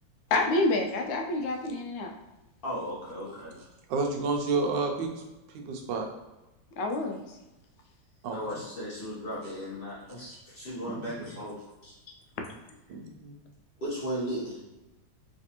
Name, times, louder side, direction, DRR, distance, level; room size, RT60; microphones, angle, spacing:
voice 1, 0.3-2.1 6.8-7.2, left 2 dB, 80° left, 3 dB, 1.3 m, -27 dB
voice 2, 2.6-3.6 8.3-11.9 13.8-14.6, equal, 40° left, -7 dB, 0.8 m, -36 dB
voice 3, 3.9-5.1 5.5-6.1 8.2-8.4 10.8-11.3 12.9-13.4, right 4 dB, 75° right, 3 dB, 1.2 m, -30 dB
3.3 x 3.2 x 2.8 m, 1.0 s
omnidirectional pair, 2.1 m